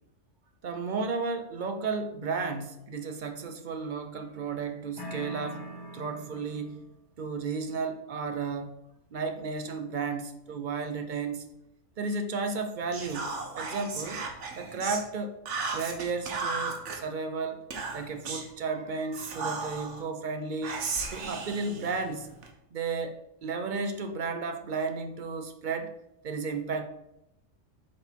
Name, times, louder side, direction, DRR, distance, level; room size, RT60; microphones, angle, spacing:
voice 1, 0.6-5.6 5.9-6.8 7.2-8.8 9.1-11.5 12.0-14.2 14.6-15.4 15.7-17.6 17.9-22.3 22.7-23.2 23.4-25.9 26.2-26.8, right 4 dB, 45° right, 7 dB, 0.7 m, -33 dB
sound 1, 5.0-6.9, right 1 dB, 20° left, 0.8 m, -42 dB
Whispering, 12.9-15.0 15.5-17.0 17.7-18.5 19.1-20.0 20.6-22.5, right 4 dB, 65° right, 1.3 m, -35 dB
7.3 x 3.9 x 4.5 m, 0.85 s
omnidirectional pair, 1.3 m